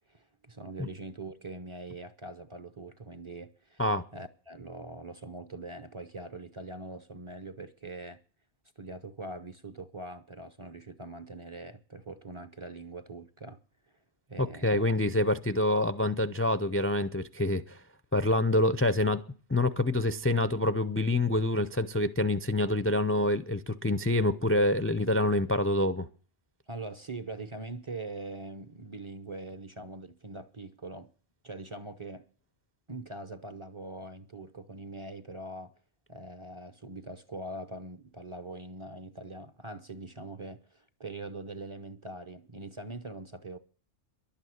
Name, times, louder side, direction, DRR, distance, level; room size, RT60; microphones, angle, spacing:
voice 1, 0.1-3.8 4.1-8.2 8.8-13.6 14.3-14.9 26.7-31.1 31.4-32.3 32.9-35.7 36.1-43.6, right 2 dB, 30° right, 0.7 m, -42 dB
voice 2, 14.4-17.8 18.1-19.2 19.5-26.1, left 1 dB, 15° left, 0.5 m, -26 dB
11.5 x 8.9 x 9.4 m
omnidirectional pair, 1.2 m